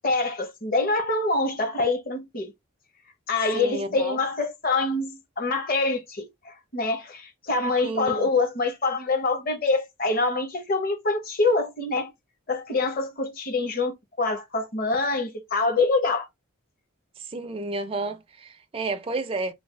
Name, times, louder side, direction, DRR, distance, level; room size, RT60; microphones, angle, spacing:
voice 1, 0.0-2.5 3.3-12.1 12.5-16.3, left 3 dB, 40° left, 0.9 m, -25 dB
voice 2, 3.5-4.2 7.8-8.3 17.3-19.5, right 3 dB, 25° right, 0.4 m, -31 dB
3.3 x 2.3 x 3.2 m
head